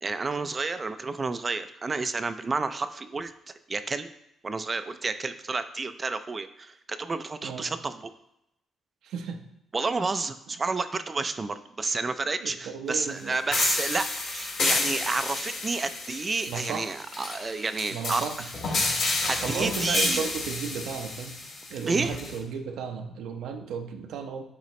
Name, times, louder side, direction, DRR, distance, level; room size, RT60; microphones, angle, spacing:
voice 1, 0.0-4.1 4.4-8.1 9.7-18.5 18.8-20.3 21.9-22.2, right 3 dB, 30° right, 10 dB, 0.4 m, -30 dB
voice 2, 9.0-9.4 12.4-13.6 16.5-17.0 17.9-18.5 19.4-24.4, right 6 dB, 80° right, 4 dB, 0.7 m, -34 dB
sound 1, 13.5-22.4, left 3 dB, 70° left, 2.1 m, -30 dB
9.5 x 3.9 x 3.1 m, 0.83 s
cardioid pair, 90°, 0 cm